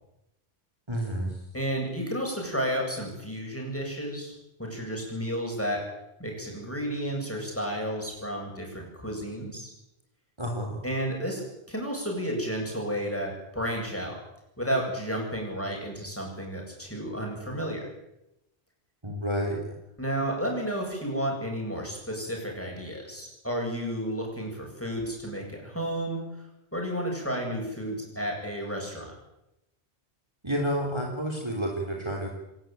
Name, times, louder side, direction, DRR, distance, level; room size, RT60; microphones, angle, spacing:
voice 1, 0.9-1.4 10.4-10.8 19.0-19.6 30.4-32.3, equal, 25° right, 1 dB, 3.4 m, -30 dB
voice 2, 1.5-4.3 4.6-5.9 6.2-9.7 10.8-11.4 11.7-14.2 14.6-17.9 20.0-26.5 26.7-29.1, equal, 10° left, 0 dB, 8.0 m, -32 dB
28.5 x 13.0 x 9.3 m, 0.88 s
omnidirectional pair, 1.1 m